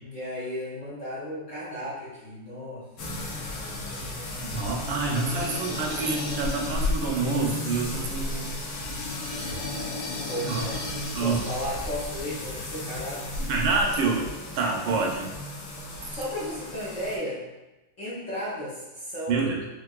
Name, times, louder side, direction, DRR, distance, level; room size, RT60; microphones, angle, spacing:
voice 1, 0.0-2.9 9.4-9.6 10.3-10.8 11.2-13.4 16.1-17.4 18.0-19.5, equal, 55° left, -9 dB, 0.9 m, -34 dB
sound 1, 3.0-17.2, left 2 dB, 75° left, 1.4 m, -34 dB
voice 2, 4.5-8.5 10.5-10.7 11.1-11.4 13.5-14.3 14.5-15.3 19.3-19.6, right 4 dB, 80° right, -1 dB, 1.4 m, -27 dB
4.5 x 2.5 x 2.3 m, 1.0 s
omnidirectional pair, 2.2 m